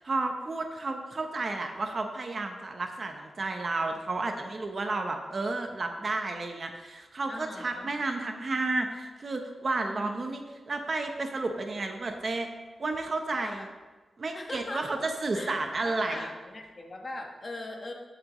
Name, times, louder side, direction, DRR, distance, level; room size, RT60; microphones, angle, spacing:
voice 1, 0.0-12.5 12.8-13.7 14.2-16.3, right 3 dB, 35° right, 4 dB, 0.8 m, -32 dB
voice 2, 7.3-7.9 9.9-10.3 13.3-13.7 14.3-15.0 15.3-17.9, left 2 dB, 30° left, 2 dB, 1.2 m, -40 dB
16.5 x 7.4 x 3.1 m, 1.3 s
wide cardioid pair, 180°, 0 cm